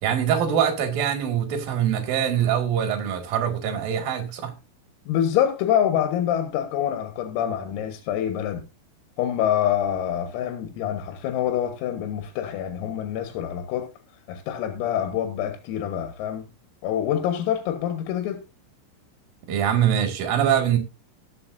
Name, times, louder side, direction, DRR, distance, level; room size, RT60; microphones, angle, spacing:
voice 1, 0.0-4.5 19.5-20.8, right 9 dB, 55° right, 3.2 m, -23 dB
voice 2, 5.1-8.6 9.2-13.9 14.3-16.5 16.8-18.4, left 10 dB, 85° left, 4.0 m, -26 dB
19.5 x 7.8 x 2.6 m
omnidirectional pair, 5.9 m